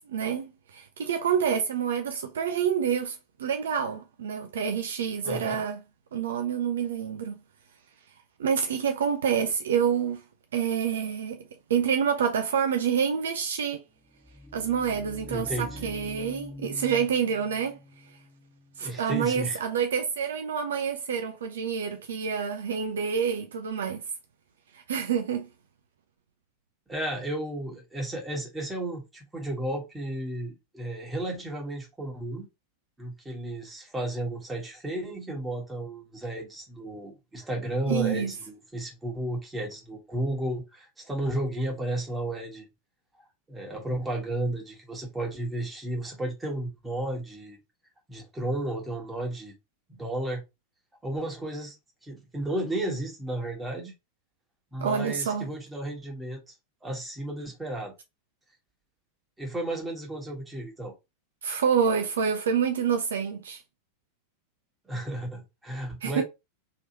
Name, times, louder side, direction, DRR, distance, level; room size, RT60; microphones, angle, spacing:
voice 1, 0.1-5.8 6.1-7.4 8.4-10.2 10.5-11.4 11.7-13.8 14.5-17.8 18.8-24.0 24.7-25.5 37.9-38.3 54.8-55.4 61.4-63.6 66.0-66.2, right 7 dB, 65° right, 0.4 m, -27 dB
voice 2, 5.2-5.6 15.3-15.9 18.8-19.6 26.9-32.5 33.0-42.7 43.2-47.6 48.1-49.5 50.0-50.4 51.0-51.7 52.0-53.9 54.7-56.5 56.8-57.9 59.4-60.9 64.9-66.2, right 1 dB, 10° right, 1.3 m, -33 dB
sound 1, 13.9-19.8, left 1 dB, 5° left, 1.2 m, -45 dB
3.0 x 2.9 x 2.8 m
figure-of-eight pair, 90°, 0 cm